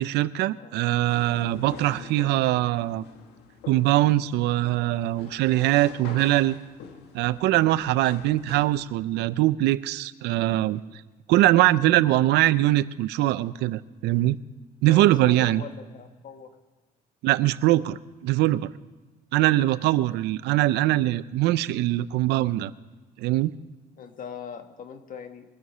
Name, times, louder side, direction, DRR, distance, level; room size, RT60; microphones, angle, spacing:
voice 1, 0.0-3.1 3.7-6.6 7.1-10.8 11.3-14.4 14.8-15.6 17.2-18.7 19.3-22.7 23.2-23.5, right 15 dB, 85° right, 16 dB, 0.6 m, -22 dB
sound 1, 1.0-8.8, left 6 dB, 85° left, 1.7 m, -45 dB
voice 2, 14.9-16.5 19.8-20.1 24.0-25.4, left 7 dB, 55° left, 7 dB, 1.7 m, -40 dB
23.0 x 8.0 x 5.6 m, 1.3 s
cardioid pair, 110°, 17 cm